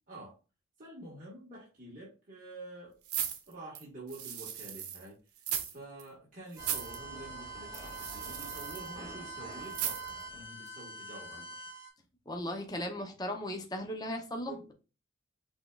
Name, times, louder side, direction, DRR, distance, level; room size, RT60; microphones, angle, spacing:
voice 1, 0.1-0.4 0.8-3.0 3.5-5.1 5.7-11.7 14.5-14.7, right 1 dB, 40° right, 1.6 m, -48 dB
sound 1, 3.1-5.0 5.4-5.7 6.0-6.1 6.5-7.0 7.7-8.9 9.7-10.2 10.7-10.8, right 9 dB, 85° right, 0.9 m, -37 dB
sound 2, 6.6-11.9, right 2 dB, 20° right, 2.1 m, -44 dB
voice 2, 12.3-14.6, left 1 dB, 20° left, 0.7 m, -37 dB
5.9 x 3.6 x 2.4 m
head